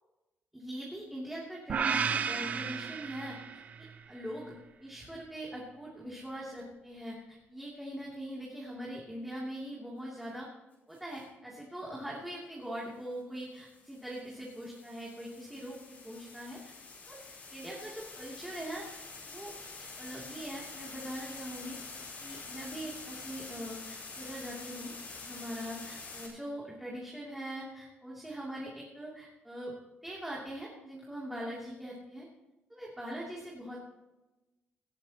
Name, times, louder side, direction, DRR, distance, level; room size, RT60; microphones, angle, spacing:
voice 1, 0.5-3.4 4.1-4.6 4.8-10.5 10.9-16.7 17.1-17.2 17.5-19.0 19.3-19.5 20.0-21.8 22.2-24.9 25.2-32.3 32.7-33.8, equal, 5° right, -5 dB, 3.0 m, -42 dB
sound 1, 1.7-3.9, right 6 dB, 40° right, 0.7 m, -32 dB
sound 2, 10.9-11.2 13.4-26.3, left 4 dB, 45° left, 4.9 m, -47 dB
18.5 x 14.0 x 3.0 m, 1.0 s
cardioid pair, 155°, 4 cm